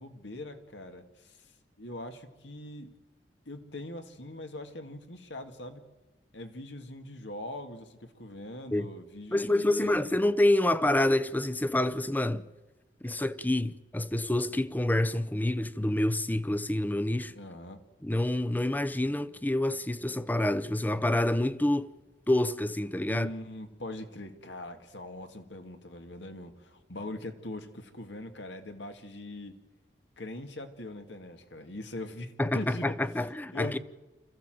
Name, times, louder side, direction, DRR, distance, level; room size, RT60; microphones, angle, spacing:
voice 1, 0.0-1.4 1.8-2.9 3.5-5.8 6.3-10.3 17.4-17.8 23.1-29.6 30.2-32.9 33.5-33.8, left 1 dB, 80° left, 2.1 m, -42 dB
voice 2, 9.3-12.5 13.0-17.3 18.0-21.9 22.3-23.3 32.4-33.8, left 1 dB, 10° left, 0.6 m, -27 dB
26.5 x 15.0 x 7.7 m
head